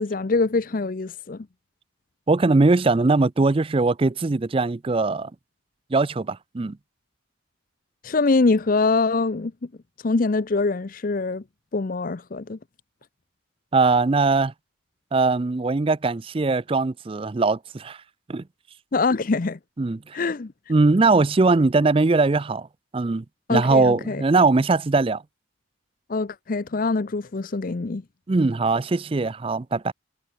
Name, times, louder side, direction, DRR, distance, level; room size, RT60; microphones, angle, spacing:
voice 1, 0.0-1.5 8.0-9.5 10.0-11.4 11.7-12.6 18.9-19.6 20.1-20.5 23.5-24.2 26.1-28.0, left 3 dB, 45° left, 0.6 m, -24 dB
voice 2, 2.3-5.3 5.9-6.8 13.7-14.5 15.1-18.0 18.3-18.4 19.8-20.1 20.7-22.7 22.9-23.2 23.5-25.2 28.3-29.9, right 3 dB, 30° right, 0.4 m, -20 dB
head